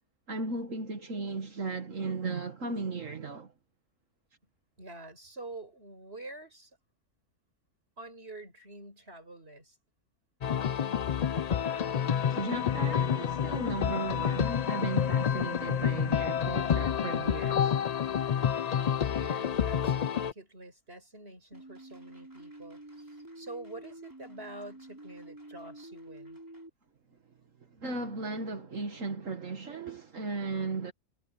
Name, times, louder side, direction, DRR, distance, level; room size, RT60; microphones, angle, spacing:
voice 1, 0.3-3.5 12.3-17.8 27.8-30.9, right 3 dB, 70° right, 2.1 m, -36 dB
voice 2, 4.8-6.7 8.0-9.8 18.7-26.4, right 2 dB, 45° right, 6.4 m, -47 dB
sound 1, 10.4-20.3, left 8 dB, 75° left, 0.3 m, -29 dB
sound 2, 21.5-26.7, right 1 dB, 15° right, 4.1 m, -48 dB
omnidirectional pair, 1.4 m